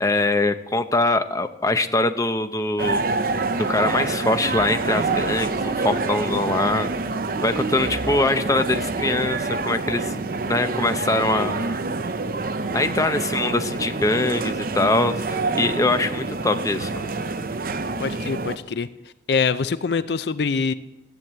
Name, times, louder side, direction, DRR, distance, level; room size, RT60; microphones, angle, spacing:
voice 1, 0.0-3.0 3.6-6.9 7.4-10.1 10.5-11.9 12.7-17.1, left 2 dB, 20° left, 8 dB, 0.7 m, -23 dB
sound 1, 2.8-18.6, right 3 dB, 50° right, 0.7 m, -26 dB
voice 2, 18.0-18.9 19.3-20.7, left 5 dB, 65° left, 14 dB, 0.5 m, -24 dB
14.5 x 9.1 x 8.0 m, 0.95 s
head